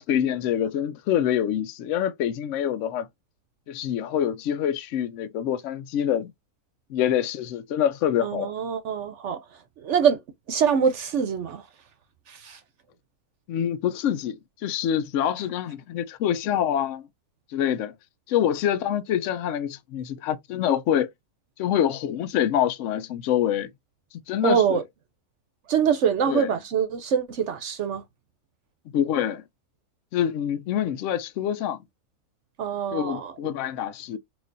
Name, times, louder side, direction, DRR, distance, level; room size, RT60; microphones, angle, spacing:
voice 1, 0.0-3.1 3.7-6.3 6.9-8.5 13.5-17.1 17.5-17.9 18.3-21.1 21.6-23.7 24.3-24.8 26.3-26.5 28.9-29.4 30.1-31.8 32.9-34.2, left 10 dB, 70° left, 0.9 m, -26 dB
voice 2, 8.2-10.2 10.5-11.7 12.3-12.6 24.4-24.8 25.7-28.0 32.6-33.3, right 7 dB, 65° right, 0.9 m, -24 dB
4.6 x 2.4 x 2.6 m
omnidirectional pair, 1.5 m